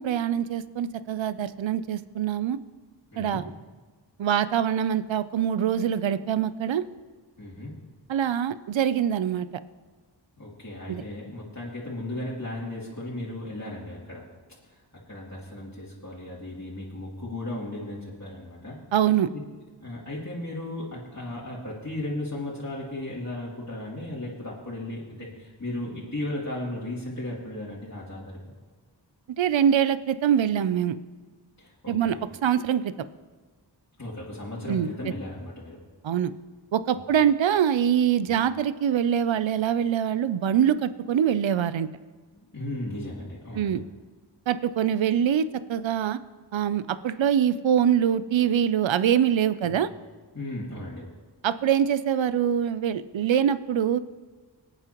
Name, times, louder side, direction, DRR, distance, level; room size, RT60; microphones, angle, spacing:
voice 1, 0.0-2.6 3.2-3.4 4.2-6.8 8.1-9.5 10.9-11.0 18.9-19.3 29.4-31.0 31.9-32.2 32.4-32.9 34.7-34.9 36.0-36.3 36.7-41.9 43.5-43.8 44.5-46.2 46.5-49.9 51.4-54.0, right 9 dB, 80° right, 14 dB, 0.6 m, -24 dB
voice 2, 3.1-3.4 7.4-7.7 10.4-14.3 14.7-18.8 19.8-28.4 31.6-32.1 34.0-35.8 36.9-37.0 42.3-43.8 49.6-49.7 50.3-51.1, left 1 dB, 35° left, -7 dB, 3.0 m, -36 dB
25.0 x 8.9 x 3.0 m, 1.4 s
wide cardioid pair, 45°, 45 cm